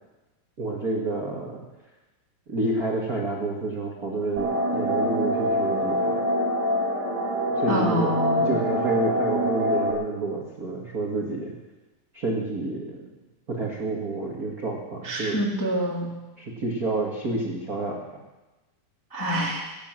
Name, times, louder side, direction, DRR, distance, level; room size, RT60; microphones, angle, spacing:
voice 1, 0.6-1.6 2.5-6.1 7.5-11.5 12.1-13.0 13.5-15.4 16.4-18.0, right 2 dB, 70° right, -2 dB, 0.8 m, -29 dB
sound 1, 4.4-9.9, equal, 25° right, 4.2 m, -25 dB
voice 2, 7.7-8.5 15.0-16.1 19.1-19.7, equal, 15° left, -2 dB, 0.7 m, -26 dB
17.5 x 9.8 x 7.6 m, 1.1 s
omnidirectional pair, 5.0 m